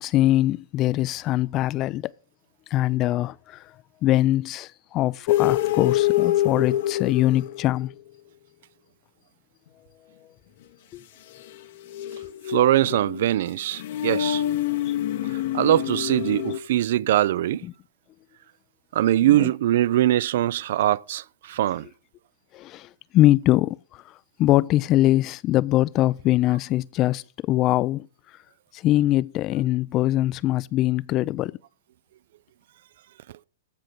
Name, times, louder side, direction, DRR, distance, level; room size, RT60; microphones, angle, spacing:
voice 1, 0.0-2.1 2.7-3.6 4.0-7.9 10.9-11.0 14.9-15.0 17.6-17.7 19.3-19.5 22.5-24.0 24.4-28.1 28.7-31.6, left 15 dB, 35° left, 0.4 m, -22 dB
sound 1, 5.3-7.9 11.4-16.6, left 13 dB, 60° left, 0.9 m, -26 dB
voice 2, 12.5-14.4 15.3-17.7 18.9-21.9, right 13 dB, 65° right, 0.4 m, -22 dB
14.5 x 5.1 x 5.9 m
hypercardioid pair, 130°, 0 cm